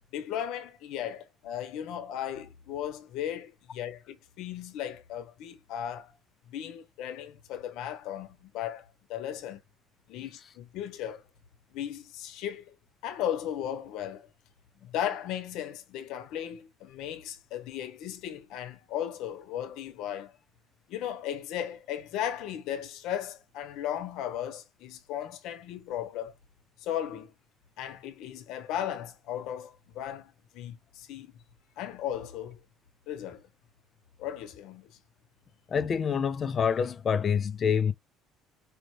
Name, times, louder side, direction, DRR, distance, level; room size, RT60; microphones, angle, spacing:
voice 1, 0.1-6.1 6.5-9.6 10.1-11.2 11.7-12.8 13.0-14.3 14.8-20.3 20.9-26.3 26.8-27.3 27.8-31.3 31.8-32.6 33.1-33.5 34.2-35.0, left 10 dB, 65° left, 0.9 m, -36 dB
voice 2, 35.7-37.9, left 7 dB, 30° left, 0.5 m, -26 dB
5.1 x 2.5 x 3.1 m
cardioid pair, 170°, 0 cm